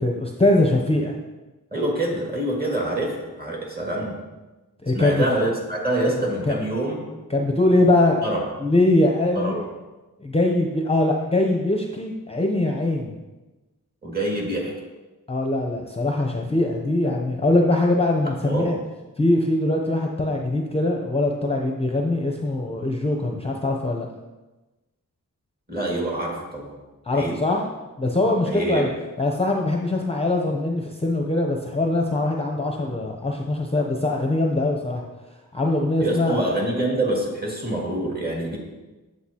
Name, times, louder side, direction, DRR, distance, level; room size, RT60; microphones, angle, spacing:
voice 1, 0.0-1.2 4.8-5.2 6.5-6.6 7.3-8.2 8.6-9.6 10.2-13.1 15.3-18.8 19.2-24.1 27.0-27.7 28.0-28.9 29.2-35.0 35.5-36.4, left 2 dB, 15° left, 0 dB, 0.7 m, -22 dB
voice 2, 1.7-4.2 4.9-7.1 8.2-8.4 9.3-9.6 14.0-14.7 18.2-18.8 25.7-26.7 27.1-27.4 28.4-28.9 36.0-38.6, right 1 dB, 25° right, -2 dB, 2.2 m, -26 dB
8.0 x 8.0 x 2.9 m, 1.2 s
wide cardioid pair, 90°, 35 cm